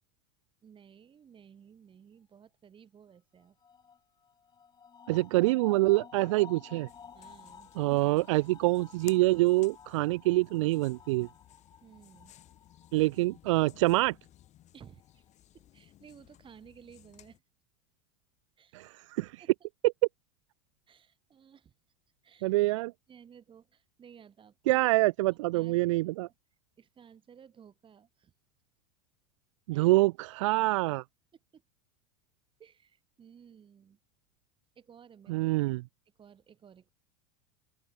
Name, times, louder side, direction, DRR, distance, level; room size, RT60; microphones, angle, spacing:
voice 1, 0.6-3.6 5.1-5.2 7.1-7.9 11.8-12.3 14.7-15.3 15.5-17.4 18.6-18.8 19.2-19.5 20.9-21.7 22.2-22.5 23.1-24.8 25.3-26.3 26.8-28.3 29.7-29.9 31.5-31.6 32.6-34.0 34.8-35.4 36.2-36.9, right 7 dB, 30° right, 6.1 m, -56 dB
sound 1, 3.4-14.2 14.8-15.3, left 6 dB, 25° left, 1.9 m, -53 dB
voice 2, 5.1-6.9 7.8-11.3 12.9-14.1 18.7-19.3 22.4-22.9 24.7-26.3 29.7-31.0 35.3-35.8, right 20 dB, 65° right, 0.6 m, -26 dB
sound 2, 6.9-17.4, left 13 dB, 40° left, 2.4 m, -57 dB
open air
hypercardioid pair, 85°, 17 cm